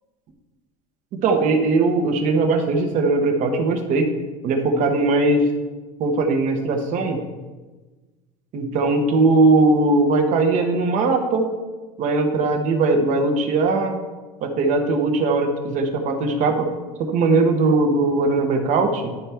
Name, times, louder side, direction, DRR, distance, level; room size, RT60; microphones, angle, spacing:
voice 1, 1.1-4.1 4.4-5.5 6.0-7.2 8.5-11.5 12.0-14.0 14.4-16.7 17.0-19.1, right 3 dB, 50° right, 6 dB, 1.0 m, -19 dB
11.0 x 4.3 x 3.5 m, 1.3 s
cardioid pair, 140°, 16 cm